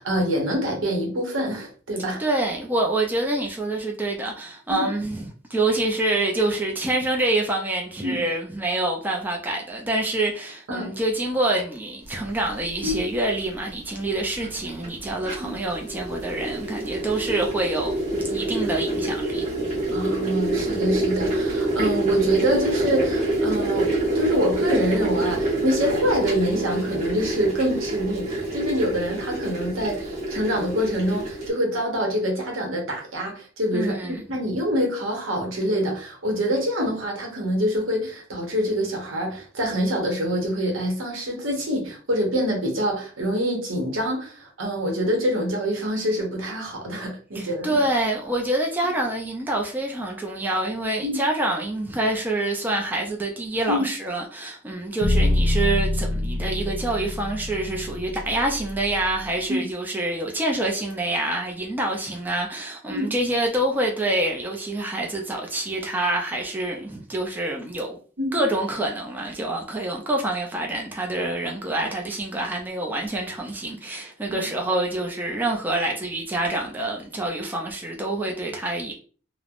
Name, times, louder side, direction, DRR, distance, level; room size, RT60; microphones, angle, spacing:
voice 1, 0.0-2.2 4.7-4.9 8.0-8.3 10.7-10.9 12.8-13.0 15.4-15.5 19.9-47.8 48.8-48.9 51.0-51.2 53.7-53.9 59.5-59.7 62.9-63.1 68.2-68.4 74.3-74.4, equal, 80° right, 0.9 m, -25 dB
voice 2, 2.2-19.8 33.7-34.2 47.3-68.0 68.3-78.9, right 2 dB, 10° right, 0.3 m, -26 dB
sound 1, 12.9-13.0 14.0-31.5, right 2 dB, 35° right, 1.1 m, -27 dB
sound 2, 55.0-59.2, left 1 dB, 75° left, 0.6 m, -25 dB
3.1 x 2.0 x 2.4 m
head